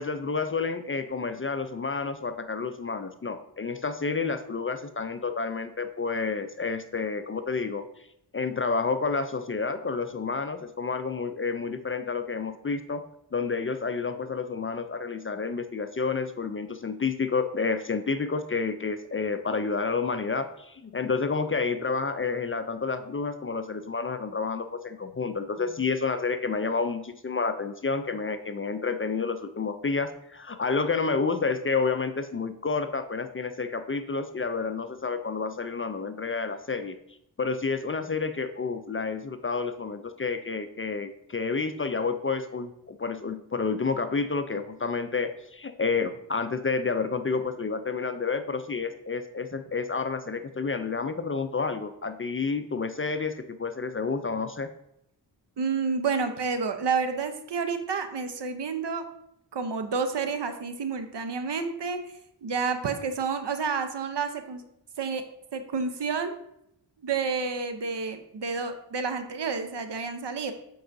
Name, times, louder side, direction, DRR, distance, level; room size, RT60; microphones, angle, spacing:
voice 1, 0.0-8.1 8.3-13.0 13.3-37.0 37.4-54.7, left 4 dB, 30° left, 9 dB, 0.4 m, -30 dB
voice 2, 55.6-59.0 59.5-62.0 62.4-64.6 65.0-65.2 65.5-66.4 67.0-70.5, right 5 dB, 65° right, 8 dB, 0.8 m, -29 dB
7.6 x 4.7 x 2.6 m, 0.79 s
cardioid pair, 45°, 44 cm